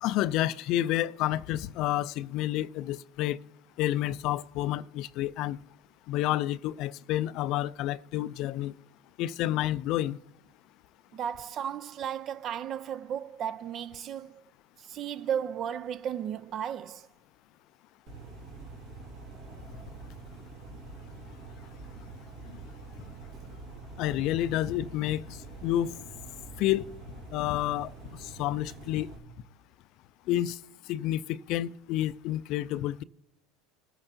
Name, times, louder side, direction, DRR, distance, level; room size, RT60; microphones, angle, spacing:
voice 1, 0.0-3.4 3.8-5.6 6.1-8.7 9.2-10.2 24.0-25.9 26.6-26.9 27.3-27.9 28.2-29.1 30.3-30.6 30.9-33.0, left 14 dB, 60° left, 0.4 m, -29 dB
voice 2, 11.1-14.4 14.8-17.1, right 9 dB, 45° right, 0.4 m, -34 dB
sound 1, 18.1-29.2, right 3 dB, 65° right, 2.0 m, -46 dB
20.5 x 8.8 x 2.7 m
hypercardioid pair, 90°, 0 cm